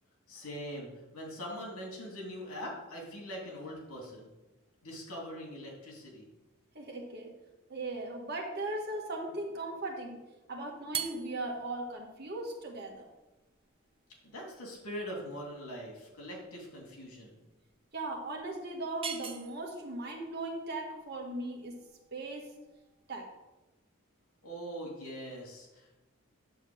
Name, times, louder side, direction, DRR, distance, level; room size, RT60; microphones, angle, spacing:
voice 1, 0.3-4.3 4.8-6.3 14.2-17.4 24.4-25.9, equal, 90° left, -1 dB, 2.8 m, -42 dB
voice 2, 6.7-7.4 7.7-10.2 10.5-13.1 17.9-22.5 23.1-23.3, right 2 dB, 45° right, 0 dB, 1.7 m, -38 dB
sound 1, 10.8-23.2, right 7 dB, 25° right, 0.6 m, -45 dB
9.2 x 4.3 x 7.2 m, 1.1 s
head